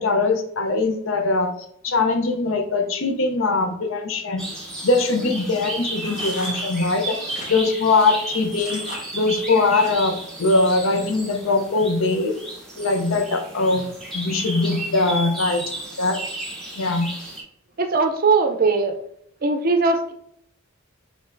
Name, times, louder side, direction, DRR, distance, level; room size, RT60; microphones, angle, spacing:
voice 1, 0.0-1.5 1.8-4.4 4.8-7.2 7.5-8.8 9.1-12.3 12.8-13.8 14.1-15.6 16.0-16.2 16.8-17.1, left 3 dB, 65° left, 6 dB, 0.6 m, -21 dB
sound 1, 4.4-17.4, right 1 dB, ahead, 0.8 m, -33 dB
sound 2, 6.1-10.2 10.7-11.2, left 1 dB, 35° left, 1.3 m, -40 dB
voice 2, 17.8-18.9 19.4-20.1, right 4 dB, 40° right, 6 dB, 0.5 m, -19 dB
5.2 x 3.2 x 2.5 m, 0.71 s
head